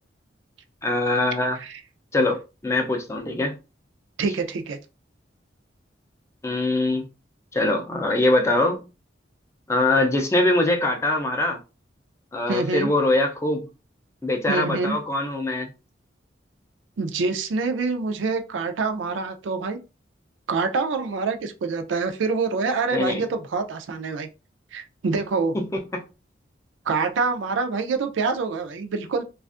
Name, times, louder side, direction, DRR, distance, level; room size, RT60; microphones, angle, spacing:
voice 1, 0.8-1.6 2.1-3.6 6.4-7.0 7.5-8.9 9.7-11.6 12.3-13.7 14.2-15.7 22.9-23.2 25.5-26.0, left 2 dB, 15° left, 0.4 m, -23 dB
voice 2, 4.2-4.8 12.5-12.9 14.5-15.0 17.0-19.8 20.5-24.3 24.7-25.6 26.9-29.2, right 4 dB, 85° right, 0.4 m, -26 dB
2.4 x 2.3 x 2.4 m
head